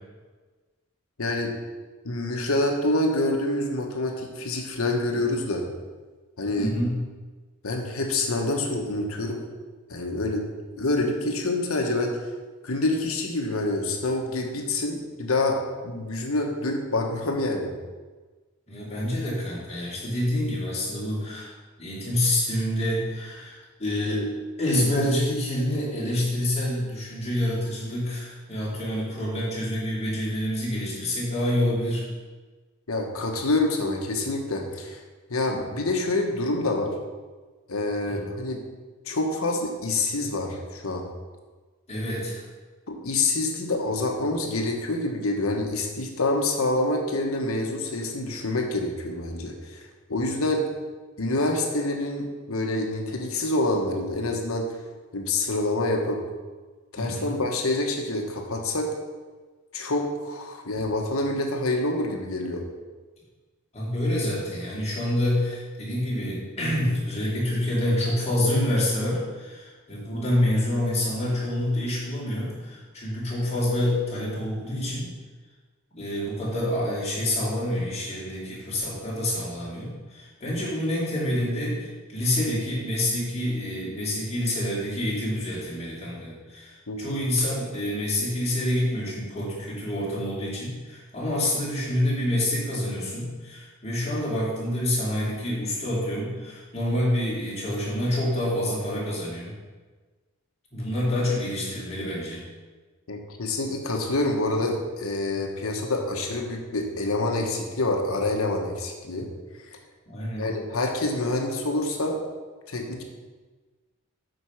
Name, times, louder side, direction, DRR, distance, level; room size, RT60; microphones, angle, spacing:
voice 1, 1.2-1.5 2.0-5.6 6.4-6.7 7.6-9.4 9.9-10.5 10.8-12.2 12.6-17.7 32.9-35.0 35.3-36.9 37.7-38.6 39.1-41.0 42.9-50.6 51.2-54.7 55.1-56.2 56.9-58.9 59.7-62.6 86.9-87.0 103.1-109.3 110.4-112.2 112.7-113.0, left 2 dB, 80° left, 2 dB, 1.3 m, -27 dB
voice 2, 6.6-7.0 18.7-21.5 21.8-24.2 24.6-32.0 38.0-38.2 41.9-42.5 56.9-57.4 63.7-75.1 75.9-99.5 100.7-102.4 110.1-110.5, left 1 dB, 30° left, -6 dB, 2.8 m, -27 dB
8.1 x 5.3 x 5.9 m, 1.3 s
head